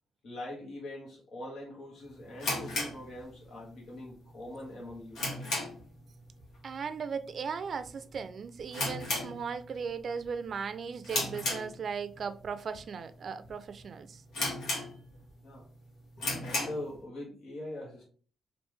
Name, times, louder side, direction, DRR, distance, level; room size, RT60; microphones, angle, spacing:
voice 1, 0.2-5.6 15.4-15.7 16.4-18.0, left 1 dB, 65° left, 1.2 m, -43 dB
sound 1, 2.4-3.7 4.0-4.1 4.6-6.0 6.3-6.6 6.8-6.9 7.6-7.9 8.2-8.3 8.7-9.9 10.2-10.5 11.0-12.2 12.7-12.8 13.4-13.5 13.8-13.9 14.3-15.3 15.7-15.8 16.1-16.9, left 2 dB, 80° left, 1.2 m, -34 dB
voice 2, 6.6-14.2, right 6 dB, 55° right, 0.4 m, -37 dB
3.3 x 2.5 x 3.1 m
cardioid pair, 70°, 0 cm